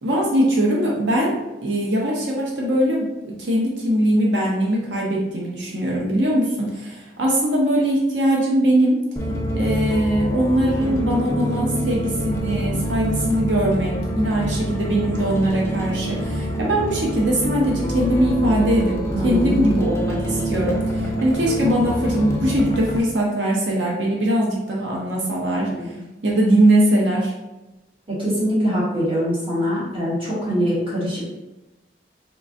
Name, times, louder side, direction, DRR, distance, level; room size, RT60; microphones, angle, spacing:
voice 1, 0.0-1.4 1.6-9.0 9.5-19.0 19.2-26.0 26.2-27.3, right 1 dB, 85° right, -3 dB, 0.7 m, -21 dB
sound 1, 9.2-23.0, equal, 15° left, 0.4 m, -26 dB
voice 2, 19.1-19.6 25.8-25.9 28.1-31.3, equal, 30° right, -8 dB, 1.5 m, -23 dB
3.7 x 3.3 x 2.6 m, 1.0 s
head